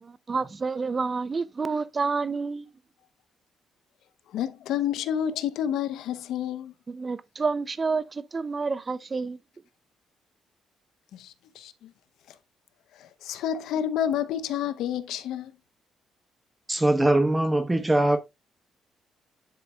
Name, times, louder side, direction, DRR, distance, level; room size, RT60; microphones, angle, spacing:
voice 1, 0.0-2.7 6.9-9.4, right 4 dB, 35° right, 0.5 m, -29 dB
voice 2, 4.3-6.7 11.1-11.9 13.0-15.5, left 9 dB, 85° left, 0.7 m, -29 dB
voice 3, 16.7-18.2, right 1 dB, 15° right, 1.0 m, -21 dB
10.5 x 4.1 x 2.3 m
cardioid pair, 90°, 0 cm